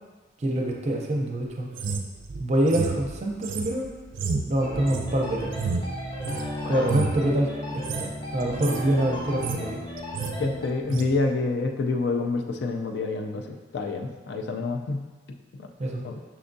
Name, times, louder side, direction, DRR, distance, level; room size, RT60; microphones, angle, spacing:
voice 1, 0.4-1.7 2.4-3.9 4.5-5.5 6.7-9.8 15.8-16.0, right 1 dB, 35° right, 0 dB, 0.6 m, -26 dB
sound 1, 1.7-6.5 6.8-7.2 7.7-8.1 8.4-8.8 9.2-9.7 10.0-10.4 10.9-11.1, right 4 dB, 90° right, 0.4 m, -31 dB
sound 2, 4.6-10.7, equal, 25° left, 0.7 m, -34 dB
voice 2, 10.4-13.4 13.7-15.0 16.0-16.1, left 3 dB, 60° left, 3 dB, 0.4 m, -27 dB
5.9 x 3.4 x 2.6 m, 1.3 s
head